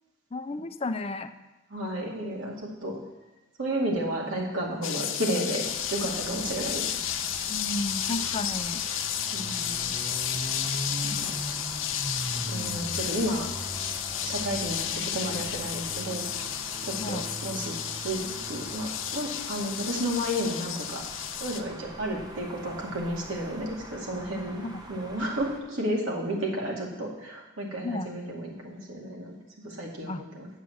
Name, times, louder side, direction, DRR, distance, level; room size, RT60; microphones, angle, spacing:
voice 1, 0.3-1.3 6.0-6.4 7.5-8.8 17.0-17.3 24.6-24.8 27.8-28.1 30.1-30.3, left 2 dB, 30° left, 9 dB, 0.5 m, -33 dB
voice 2, 1.7-3.0 3.6-5.6 5.9-6.9 9.3-9.9 11.0-11.3 12.5-13.5 14.2-16.2 16.8-21.0 21.4-24.6 24.9-30.5, right 1 dB, 90° right, -2 dB, 2.3 m, -32 dB
sound 1, 4.8-21.6, left 10 dB, 85° left, 0.7 m, -32 dB
sound 2, 5.7-25.6, right 1 dB, 20° right, 1.1 m, -41 dB
8.3 x 6.2 x 7.7 m, 1.1 s
head